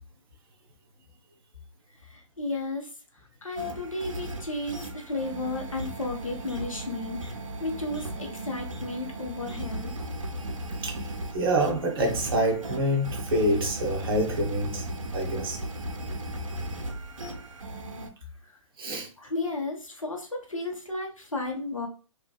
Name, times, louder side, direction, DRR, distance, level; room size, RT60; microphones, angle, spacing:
voice 1, 2.0-2.9 3.4-7.3 7.6-9.9 18.4-18.5 19.2-21.9, left 2 dB, 85° left, 1.0 m, -33 dB
sound 1, 3.6-18.1, right 1 dB, 75° right, 0.6 m, -36 dB
voice 2, 10.8-14.9 15.1-15.6 18.8-19.1, right 1 dB, 45° right, 1.0 m, -27 dB
3.4 x 2.4 x 2.2 m
figure-of-eight pair, 125°, 17 cm